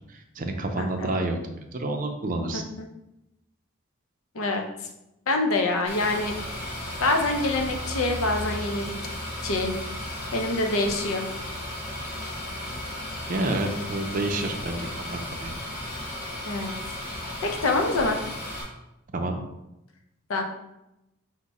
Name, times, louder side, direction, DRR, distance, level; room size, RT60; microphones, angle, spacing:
voice 1, 0.1-2.6 13.3-15.5 19.1-19.4, right 2 dB, 40° right, 4 dB, 0.5 m, -29 dB
voice 2, 0.8-1.1 2.5-2.9 4.3-4.6 5.3-6.4 7.0-8.9 9.4-9.7 10.3-11.3 16.4-16.7 17.4-18.2 20.3-20.4, left 2 dB, 85° left, 3 dB, 0.6 m, -25 dB
sound 1, 5.9-18.6, left 1 dB, 45° left, 1.4 m, -35 dB
4.7 x 2.1 x 4.1 m, 0.90 s
head